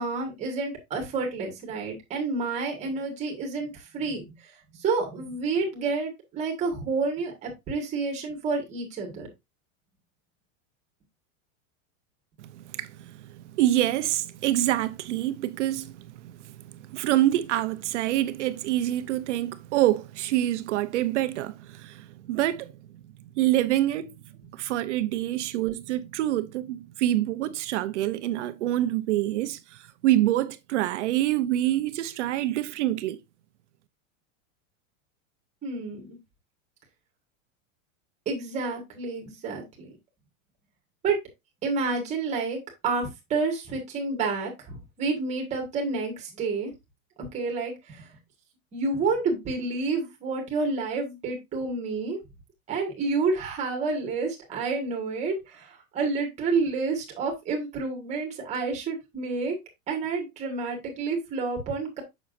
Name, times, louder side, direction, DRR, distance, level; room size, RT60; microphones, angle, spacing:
voice 1, 0.0-4.4 4.7-9.3 35.6-36.2 38.2-39.9 41.0-41.2 41.6-46.7 47.3-48.1 48.7-52.2 52.7-59.6 59.9-62.0, right 4 dB, 15° right, 1.7 m, -29 dB
voice 2, 12.4-22.7 23.3-24.1 24.5-33.2, right 14 dB, 60° right, 0.7 m, -26 dB
7.0 x 6.2 x 2.5 m
supercardioid pair, 180°, 41 cm